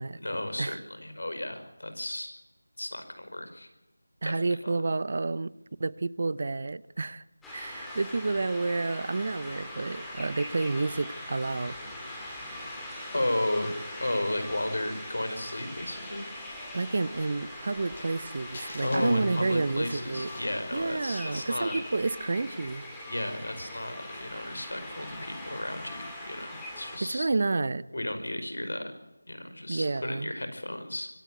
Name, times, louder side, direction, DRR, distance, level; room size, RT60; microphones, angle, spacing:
voice 1, 0.2-2.4 2.8-3.7 4.2-4.8 13.1-13.7 14.0-16.3 18.8-21.8 23.1-27.3 27.9-28.9 29.3-31.1, left 1 dB, 75° left, 8 dB, 5.4 m, -33 dB
voice 2, 4.2-5.5 5.8-7.2 7.5-11.8 16.7-20.3 20.7-22.8 27.0-27.8 29.7-30.3, right 3 dB, 40° right, 20 dB, 0.7 m, -30 dB
sound 1, 7.4-27.0, left 1 dB, 5° left, 2.7 m, -41 dB
Crumpling crinkling, 15.5-18.2 18.5-22.7 23.0-23.1 23.7-24.6 25.1-25.4, left 1 dB, 25° left, 6.5 m, -49 dB
25.5 x 13.0 x 9.2 m, 0.99 s
figure-of-eight pair, 175°, 0 cm